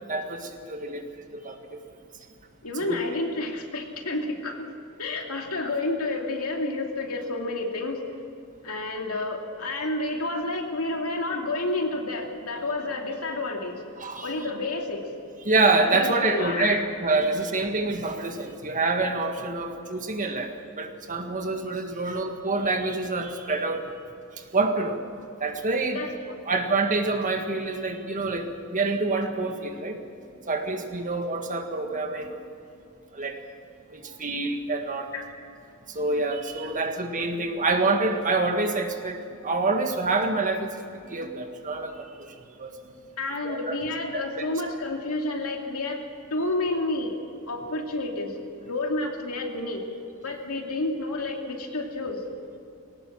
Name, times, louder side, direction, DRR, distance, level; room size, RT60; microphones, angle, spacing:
voice 1, 0.1-1.0 1.3-1.6 2.9-3.0 14.0-14.3 15.5-24.0 24.5-25.0 25.4-26.0 26.5-30.0 30.5-32.4 33.1-33.4 33.9-35.1 35.9-39.2 39.4-40.7 41.1-42.3 42.6-42.7 43.4-43.7 44.1-44.5, right 3 dB, 35° right, 5 dB, 1.8 m, -26 dB
voice 2, 2.6-4.7 5.0-8.0 8.6-13.8 14.2-15.2 15.9-17.2 25.9-26.4 35.1-35.3 36.6-36.7 43.2-46.0 46.3-47.2 47.5-49.8 50.2-52.2, left 2 dB, 80° left, 2 dB, 2.7 m, -30 dB
20.5 x 18.0 x 7.5 m, 2.7 s
head